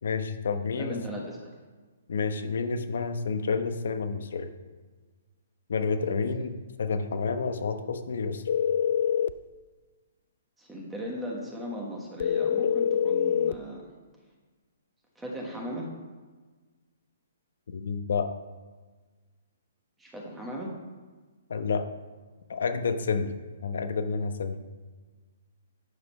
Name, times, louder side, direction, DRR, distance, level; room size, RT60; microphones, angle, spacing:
voice 1, 0.0-1.0 2.1-4.5 5.7-8.4 17.7-18.3 21.5-21.9 22.5-23.3 23.6-24.6, left 5 dB, 70° left, 8 dB, 1.0 m, -29 dB
voice 2, 0.7-1.5 10.6-13.9 15.1-15.9 20.0-20.7, equal, 5° right, -2 dB, 1.2 m, -37 dB
sound 1, 8.5-9.4 12.2-13.6, left 8 dB, 55° left, 0.4 m, -25 dB
10.5 x 5.1 x 5.5 m, 1.4 s
hypercardioid pair, 165°, 0 cm